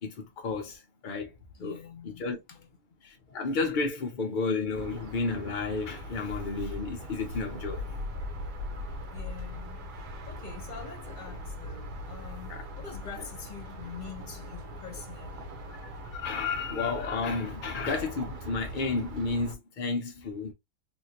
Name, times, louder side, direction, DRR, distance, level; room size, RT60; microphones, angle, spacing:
voice 1, 0.0-1.3 1.6-1.8 2.2-2.4 3.0-8.0 12.5-12.6 16.1-20.5, left 4 dB, 65° left, 0.4 m, -32 dB
voice 2, 1.5-2.8 9.1-15.6, left 6 dB, 35° left, 0.9 m, -45 dB
sound 1, 4.7-19.5, left 1 dB, 90° right, 1.5 m, -40 dB
3.5 x 2.6 x 2.8 m
omnidirectional pair, 1.7 m